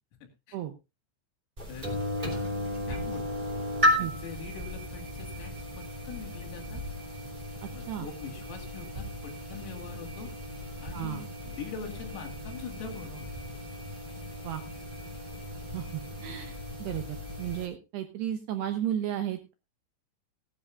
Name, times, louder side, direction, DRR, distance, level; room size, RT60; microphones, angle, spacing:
voice 1, 0.2-0.6 1.7-1.9 2.3-2.5 2.9-3.4 4.0-6.8 7.7-10.3 10.8-13.4, left 6 dB, 90° left, 3 dB, 5.2 m, -43 dB
sound 1, 1.6-17.7, left 1 dB, 15° right, 2.1 m, -35 dB
voice 2, 7.6-8.1 10.9-11.2 14.4-14.6 15.7-19.5, right 11 dB, 75° right, 7 dB, 2.5 m, -34 dB
18.0 x 12.5 x 2.5 m, 0.26 s
omnidirectional pair, 5.8 m